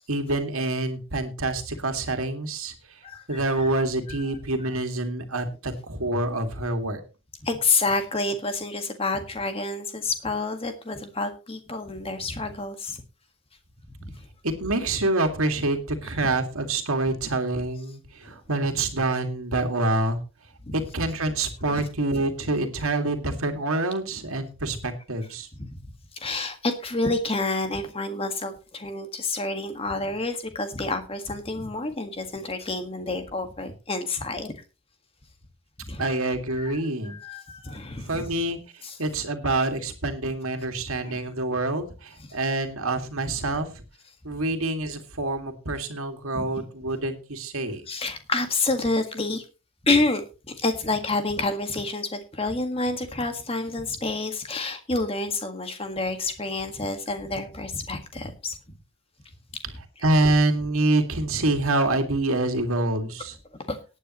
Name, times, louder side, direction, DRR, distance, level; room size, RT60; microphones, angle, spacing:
voice 1, 0.1-2.7 3.3-7.0 14.4-20.2 20.7-25.5 36.0-37.2 38.0-43.8 44.2-47.8 60.0-63.4, right 2 dB, 80° right, 6 dB, 2.2 m, -26 dB
voice 2, 3.0-3.7 4.1-4.2 4.6-4.7 7.4-13.0 14.1-14.2 18.3-18.4 20.6-20.7 21.7-21.8 25.6-25.7 26.1-34.5 35.8-36.2 36.5-36.8 37.0-38.3 38.8-39.0 41.0-41.2 46.4-46.7 47.9-49.4 49.8-50.2 50.5-58.6 63.7-63.8, left 3 dB, 25° left, 7 dB, 1.7 m, -28 dB
18.5 x 9.3 x 3.1 m, 0.31 s
head